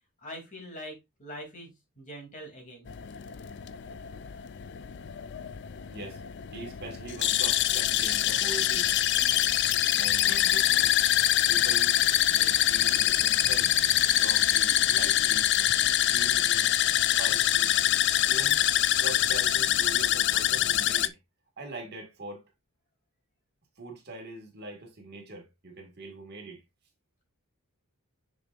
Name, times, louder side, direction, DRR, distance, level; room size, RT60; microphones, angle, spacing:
voice 1, 0.2-2.9 10.2-10.5, equal, 35° left, 2.8 m, -43 dB
sound 1, 2.9-21.1, left 13 dB, 50° left, 0.4 m, -25 dB
voice 2, 5.9-6.2 6.5-8.9 10.0-11.0 11.5-12.0 12.3-13.7 14.2-15.5 16.1-16.7 17.0-17.7 18.3-18.7 19.0-21.2 21.6-22.4 23.8-26.6, right 2 dB, 45° right, 1.9 m, -42 dB
6.7 x 6.4 x 2.5 m
head